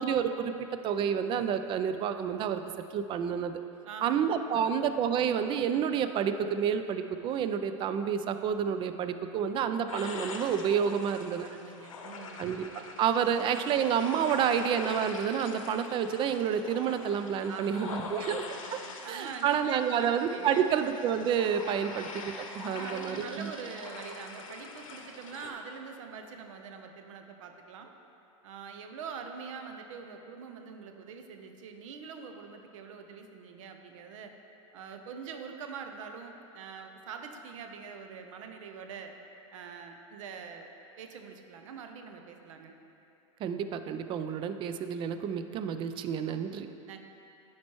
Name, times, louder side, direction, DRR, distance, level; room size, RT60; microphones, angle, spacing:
voice 1, 0.0-2.6 2.9-3.6 4.0-11.5 12.4-18.4 18.7-18.8 19.0-23.5 43.4-46.7, right 8 dB, 30° right, 9 dB, 0.4 m, -29 dB
voice 2, 3.9-4.8 11.4-12.4 17.4-20.7 21.6-21.8 22.6-27.9 28.4-34.3 34.7-39.1 39.5-40.7 41.0-42.7 46.9-47.0, right 6 dB, 70° right, 5 dB, 0.6 m, -44 dB
sound 1, 9.9-25.5, left 4 dB, 85° left, 0.7 m, -44 dB
10.0 x 4.3 x 3.1 m, 2.8 s
hypercardioid pair, 110°, 17 cm